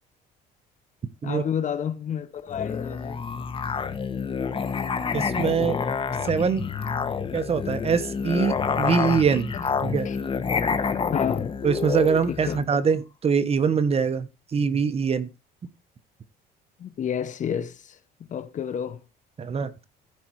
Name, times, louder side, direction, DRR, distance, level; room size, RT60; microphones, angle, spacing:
voice 1, 1.2-3.2 9.9-10.2 11.1-11.5 12.3-12.6 16.8-18.0 18.3-19.0, left 8 dB, 50° left, 1.2 m, -30 dB
Musical instrument, 2.5-12.7, left 6 dB, 30° left, 1.2 m, -28 dB
voice 2, 5.1-5.8 6.2-6.7 7.3-9.5 9.8-10.1 11.6-15.3 19.4-19.9, right 6 dB, 35° right, 1.2 m, -23 dB
15.0 x 5.1 x 4.7 m
cardioid pair, 110°, 17 cm